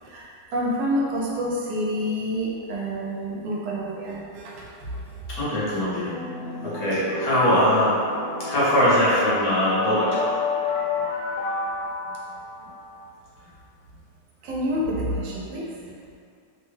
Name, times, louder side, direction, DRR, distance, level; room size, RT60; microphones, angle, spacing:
voice 1, 0.0-5.2 5.7-5.8 14.4-16.0, equal, 90° right, -4 dB, 1.3 m, -28 dB
voice 2, 5.3-6.1 6.6-8.0 8.4-10.3, equal, 60° left, -9 dB, 1.1 m, -21 dB
sound 1, 6.0-13.1, left 3 dB, 90° left, 1.3 m, -30 dB
3.3 x 2.2 x 3.1 m, 2.3 s
omnidirectional pair, 2.0 m